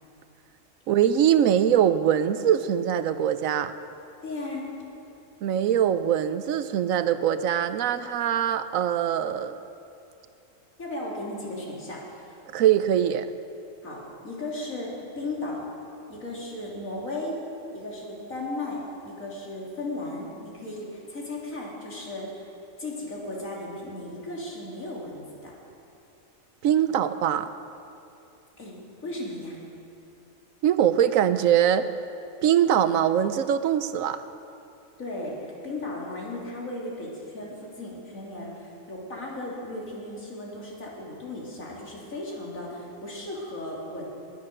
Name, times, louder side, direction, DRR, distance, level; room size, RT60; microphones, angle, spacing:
voice 1, 0.9-3.7 5.4-9.6 12.5-13.3 26.6-27.5 30.6-31.9 32.4-34.2, right 10 dB, 80° right, 12 dB, 1.0 m, -22 dB
voice 2, 4.2-4.6 10.8-12.4 13.8-14.0 14.2-15.6 16.1-17.3 17.7-22.5 22.8-25.6 28.6-29.6 35.0-44.0, left 2 dB, 80° left, -4 dB, 3.3 m, -36 dB
21.0 x 8.3 x 6.6 m, 2.7 s
omnidirectional pair, 1.4 m